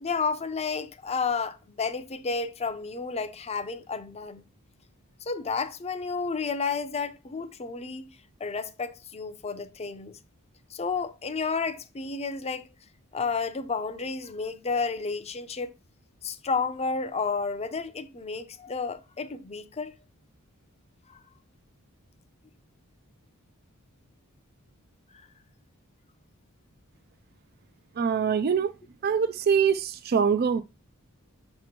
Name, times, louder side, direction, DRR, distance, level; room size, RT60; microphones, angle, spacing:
voice 1, 0.0-4.4 5.2-10.2 10.7-12.7 13.1-15.7 16.2-19.9 21.1-21.2, left 4 dB, 30° left, 0.6 m, -31 dB
voice 2, 28.0-28.7 29.0-30.6, right 6 dB, 45° right, 0.4 m, -24 dB
6.8 x 3.0 x 5.1 m
head